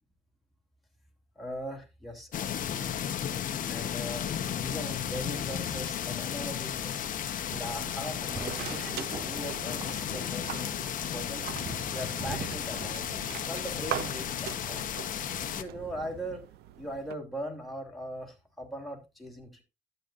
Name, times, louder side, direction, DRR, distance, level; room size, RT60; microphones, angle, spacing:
voice 1, 1.3-3.2 3.6-4.3 4.6-7.1 7.6-13.1 13.5-16.5 16.8-19.6, equal, ahead, 2.9 m, -40 dB
sound 1, 2.3-15.6, left 9 dB, 50° left, 1.1 m, -34 dB
sound 2, 7.4-17.2, right 12 dB, 75° right, 0.7 m, -43 dB
sound 3, 7.5-16.4, right 4 dB, 30° right, 1.4 m, -45 dB
12.0 x 7.9 x 2.5 m
cardioid pair, 110°, 17 cm